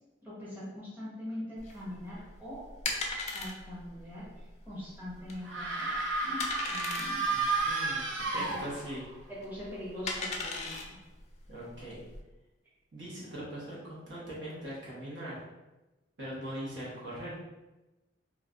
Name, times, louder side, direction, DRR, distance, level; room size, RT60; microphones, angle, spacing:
voice 1, 0.2-2.6 3.3-4.3 4.7-7.3 8.3-8.6 9.3-10.7, left 1 dB, 10° right, -9 dB, 1.0 m, -42 dB
sound 1, 1.6-12.2, left 3 dB, 35° left, 0.4 m, -39 dB
sound 2, 5.4-9.1, right 3 dB, 85° right, 0.6 m, -32 dB
voice 2, 7.2-8.0 8.3-9.0 11.5-12.0 12.9-15.4 16.2-17.4, equal, 70° right, -7 dB, 1.0 m, -41 dB
3.1 x 2.3 x 2.4 m, 1.1 s
head